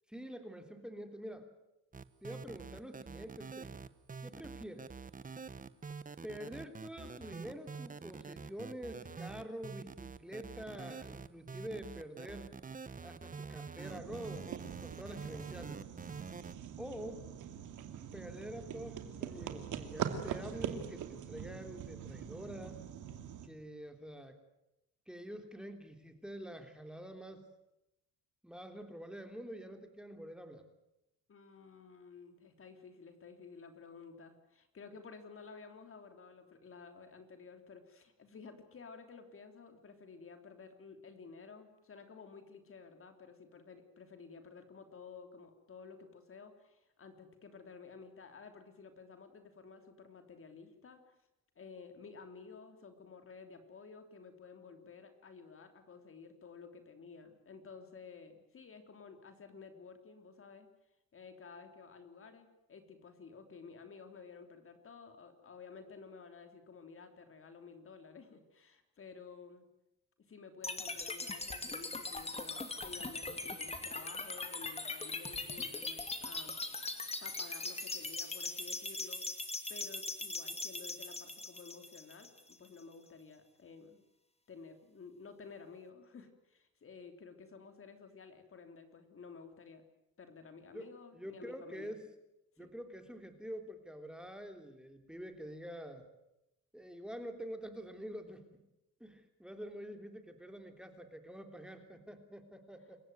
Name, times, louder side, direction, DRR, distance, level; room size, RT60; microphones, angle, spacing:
voice 1, 0.1-1.5 2.2-3.9 4.2-4.9 6.2-12.5 13.0-15.8 16.8-17.4 18.1-22.8 23.4-24.4 25.1-27.5 28.4-30.6 90.7-92.1 92.6-96.1 96.7-98.6 99.0-103.0, equal, 5° right, 6 dB, 3.2 m, -47 dB
sound 1, 1.9-16.5, right 5 dB, 25° right, 1.2 m, -46 dB
sound 2, 13.8-23.5, right 9 dB, 80° right, 2.6 m, -43 dB
voice 2, 31.3-51.1 51.5-60.7 61.1-69.6 70.3-76.6 77.2-79.2 79.7-84.0 84.5-89.8 90.2-91.9 92.6-92.7, left 5 dB, 45° left, 7 dB, 3.2 m, -53 dB
sound 3, 70.6-82.7, left 3 dB, 20° left, 2.7 m, -41 dB
28.0 x 15.5 x 9.4 m, 0.89 s
cardioid pair, 90°, 30 cm